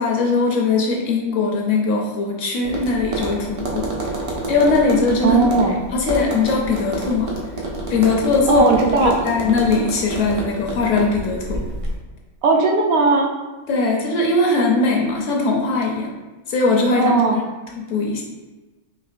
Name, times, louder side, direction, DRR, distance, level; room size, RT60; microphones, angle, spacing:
voice 1, 0.0-3.9 4.5-5.4 5.9-7.3 7.9-8.6 9.0-11.6 13.7-16.1 16.5-17.4 17.8-18.2, left 3 dB, 65° left, -1 dB, 0.9 m, -20 dB
Tap, 2.6-11.9, right 1 dB, 50° right, 0.4 m, -28 dB
voice 2, 5.2-5.7 8.5-9.2 12.4-13.3 17.0-17.4, right 3 dB, 70° right, 1 dB, 1.0 m, -17 dB
4.6 x 2.8 x 2.4 m, 1.2 s
omnidirectional pair, 1.5 m